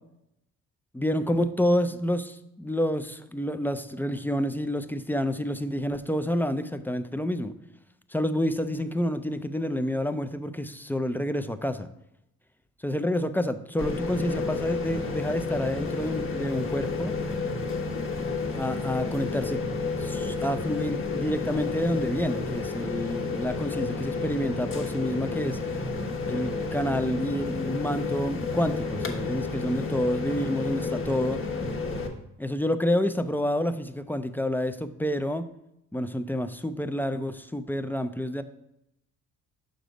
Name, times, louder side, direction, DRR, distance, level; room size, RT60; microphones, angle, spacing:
voice 1, 0.9-7.5 8.1-11.9 12.8-17.1 18.6-19.6 20.0-25.6 26.3-31.4 32.4-35.5 35.9-38.4, equal, 5° left, 9 dB, 0.4 m, -28 dB
sound 1, 13.8-32.1, left 4 dB, 45° left, 1.3 m, -31 dB
6.6 x 3.9 x 5.1 m, 0.81 s
cardioid pair, 90°, 30 cm